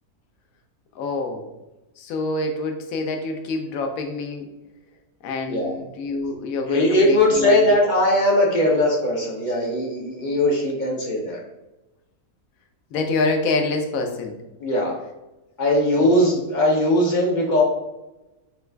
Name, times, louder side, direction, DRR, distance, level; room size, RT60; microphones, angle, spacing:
voice 1, 1.0-1.4 2.0-4.4 5.2-7.7 12.9-14.3 16.0-16.1, left 3 dB, 70° left, 4 dB, 1.0 m, -26 dB
voice 2, 6.7-11.4 14.6-14.9 15.6-17.6, left 1 dB, 45° left, -2 dB, 0.6 m, -19 dB
6.8 x 2.4 x 2.2 m, 1.0 s
omnidirectional pair, 1.6 m